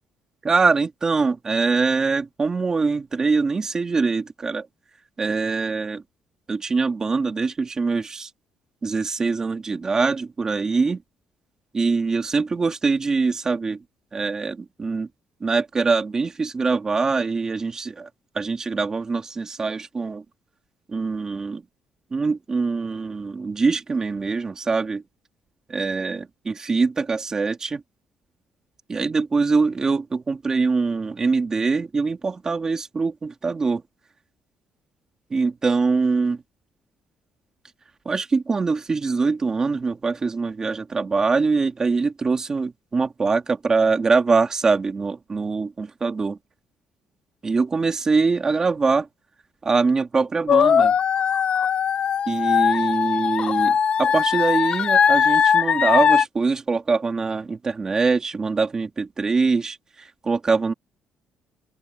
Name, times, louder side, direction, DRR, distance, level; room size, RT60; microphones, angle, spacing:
voice 1, 0.4-4.7 5.2-6.0 6.5-8.3 8.8-11.0 11.7-13.8 14.1-15.1 15.4-18.1 18.4-20.2 20.9-21.6 22.1-25.0 25.7-27.8 28.9-33.8 35.3-36.4 38.1-46.4 47.4-49.1 49.6-50.9 52.3-60.7, right 4 dB, 25° right, 2.1 m, -23 dB
sound 1, 50.5-56.3, left 7 dB, 40° left, 0.7 m, -19 dB
open air
cardioid pair, 145°, 3 cm